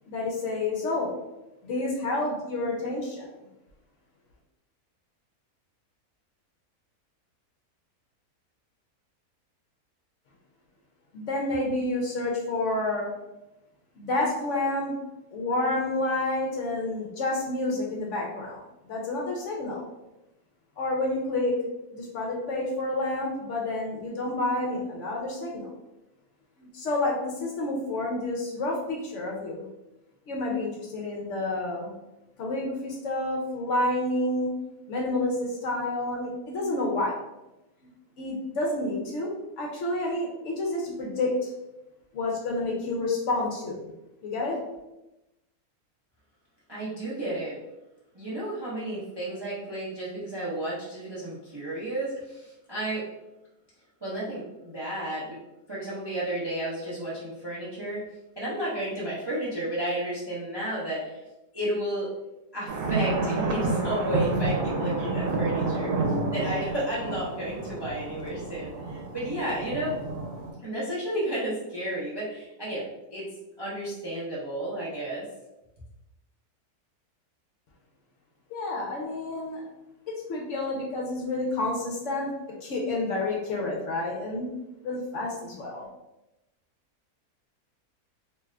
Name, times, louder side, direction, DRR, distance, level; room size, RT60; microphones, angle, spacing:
voice 1, 0.1-1.1 1.6-3.3 11.1-13.1 14.0-14.9 15.3-19.9 20.8-21.6 21.9-25.7 26.6-29.7 30.3-31.9 32.4-34.5 34.9-37.1 38.2-41.5 42.1-43.9 44.2-44.6 78.5-79.6 80.1-82.3 82.6-84.5 84.8-85.9, left 2 dB, 65° left, -1 dB, 0.8 m, -29 dB
voice 2, 46.7-47.6 48.1-53.1 54.0-55.4 55.7-58.0 58.4-61.2 61.5-62.1 62.5-66.0 66.3-70.0 70.6-73.3 73.6-75.3, right 1 dB, 35° right, -8 dB, 0.4 m, -32 dB
sound 1, 62.7-70.5, right 2 dB, 85° right, 1.1 m, -29 dB
2.7 x 2.4 x 3.2 m, 0.95 s
omnidirectional pair, 1.6 m